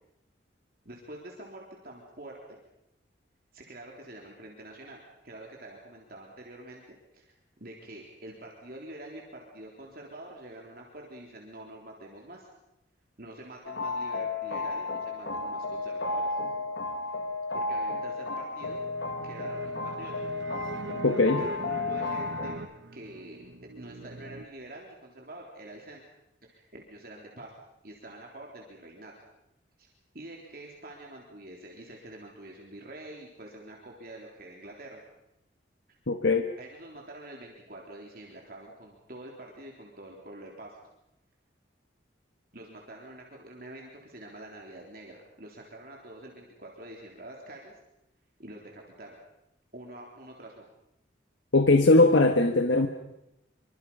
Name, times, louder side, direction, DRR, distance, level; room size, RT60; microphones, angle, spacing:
voice 1, 0.9-2.6 3.5-12.5 13.2-16.4 17.5-18.8 19.2-20.1 21.4-22.6 22.9-23.4 23.8-26.0 26.5-27.5 27.8-29.1 29.8-29.9 30.1-35.0 36.6-40.8 42.5-47.7 48.4-49.2 49.7-50.7, right 1 dB, 50° right, -1 dB, 3.7 m, -46 dB
sound 1, 13.6-22.6, left 3 dB, 60° left, 1.9 m, -33 dB
sound 2, 18.6-24.4, right 2 dB, 70° right, 1.2 m, -41 dB
voice 2, 21.0-21.5 36.1-36.5 51.5-52.9, left 2 dB, 80° left, 5 dB, 1.6 m, -20 dB
26.0 x 25.5 x 5.6 m, 0.88 s
head